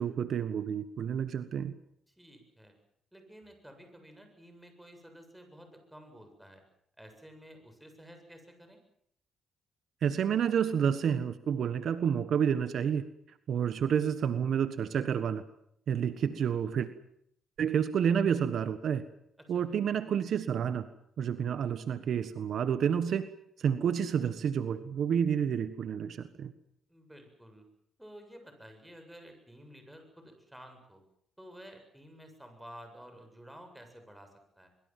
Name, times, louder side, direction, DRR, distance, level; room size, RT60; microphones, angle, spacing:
voice 1, 0.0-1.7 10.0-13.0 13.5-15.4 15.9-16.9 17.6-19.0 19.5-20.9 21.2-23.3 23.6-26.5, right 8 dB, 65° right, 12 dB, 1.4 m, -29 dB
voice 2, 2.1-2.7 3.1-6.6 7.0-8.8 19.4-19.7 26.9-27.7 28.0-31.0 31.4-34.7, equal, 5° right, 5 dB, 7.7 m, -52 dB
23.5 x 23.5 x 7.6 m, 0.72 s
cardioid pair, 90°, 0 cm